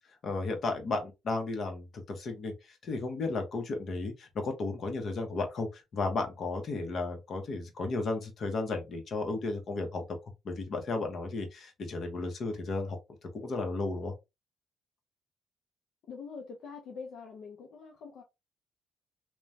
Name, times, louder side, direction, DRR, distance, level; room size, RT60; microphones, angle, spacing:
voice 1, 0.2-2.5 2.8-10.0 10.4-13.0 13.3-14.1, left 3 dB, 55° left, 0.9 m, -34 dB
voice 2, 16.1-18.2, left 5 dB, 75° left, 0.5 m, -44 dB
3.0 x 2.2 x 2.6 m
cardioid pair, 90°, 0 cm